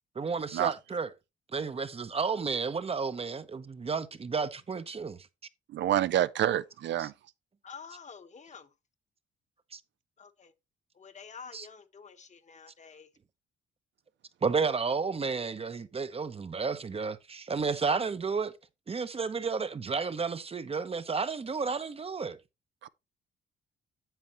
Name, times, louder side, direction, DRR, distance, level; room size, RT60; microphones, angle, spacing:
voice 1, 0.2-1.1 1.5-5.2 7.0-7.1 9.7-9.8 11.5-11.7 14.4-18.5 18.9-22.4, right 5 dB, 30° right, 0.8 m, -32 dB
voice 2, 5.7-7.1 22.8-22.9, right 12 dB, 65° right, 0.5 m, -27 dB
voice 3, 7.6-8.7 10.2-10.5 10.9-13.1, left 6 dB, 35° left, 1.1 m, -48 dB
9.1 x 7.6 x 3.0 m
cardioid pair, 90°, 20 cm